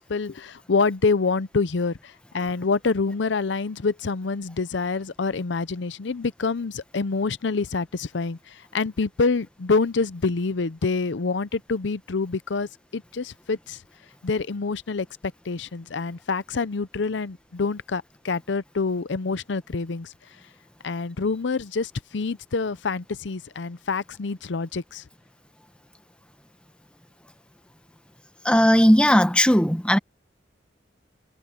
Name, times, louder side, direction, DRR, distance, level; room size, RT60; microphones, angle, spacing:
voice 1, 0.0-13.8 14.2-15.1 15.5-20.1 20.8-25.0, left 4 dB, 70° left, 0.6 m, -26 dB
voice 2, 28.4-30.0, equal, 5° left, 1.1 m, -17 dB
head